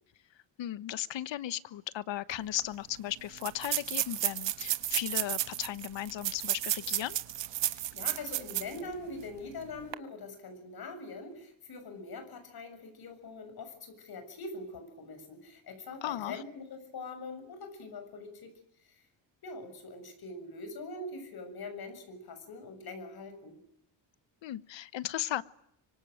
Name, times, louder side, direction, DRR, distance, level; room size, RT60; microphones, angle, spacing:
voice 1, 0.6-7.2 16.0-16.4 24.4-25.4, left 12 dB, 70° left, 16 dB, 1.2 m, -36 dB
sound 1, 2.3-2.4 2.6-2.7 3.4-8.8 9.2-9.3 9.8-9.9, right 13 dB, 65° right, 1.3 m, -33 dB
voice 2, 7.7-18.5 18.8-19.0 19.4-23.6, left 3 dB, 50° left, 8 dB, 7.0 m, -43 dB
25.0 x 24.0 x 9.1 m, 0.73 s
cardioid pair, 150°, 46 cm